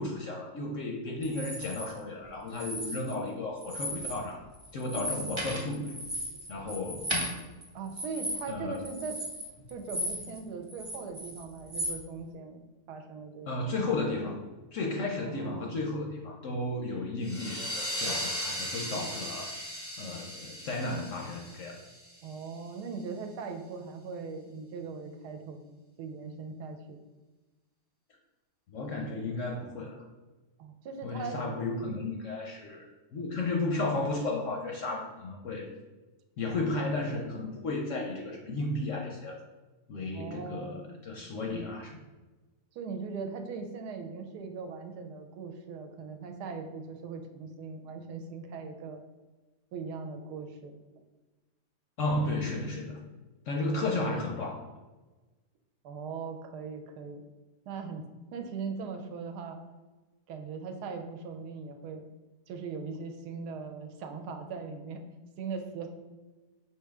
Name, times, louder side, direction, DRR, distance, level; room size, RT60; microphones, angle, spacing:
voice 1, 0.0-4.4 4.7-5.9 6.5-7.1 8.5-8.8 13.5-14.4 14.7-19.5 20.0-21.8 28.7-30.0 31.0-32.9 33.1-35.7 36.4-39.4 39.9-42.0 52.0-53.0 53.5-54.6, left 2 dB, 65° left, 0 dB, 0.8 m, -33 dB
sound 1, 1.2-1.9 2.5-3.3 3.6-4.2 4.5-10.4 10.7-12.0, equal, 25° right, 0.6 m, -36 dB
voice 2, 7.7-9.2 9.7-13.5 15.3-15.8 22.2-27.0 30.6-31.4 40.1-41.2 42.7-49.0 49.7-50.7 53.5-53.9 55.8-57.2 57.7-58.0 58.3-59.6 60.3-62.1 62.5-65.0 65.4-65.9, right 5 dB, 80° right, 5 dB, 1.1 m, -40 dB
sound 2, 17.2-22.6, equal, 20° left, 0.4 m, -37 dB
5.2 x 2.8 x 3.5 m, 1.2 s
omnidirectional pair, 1.8 m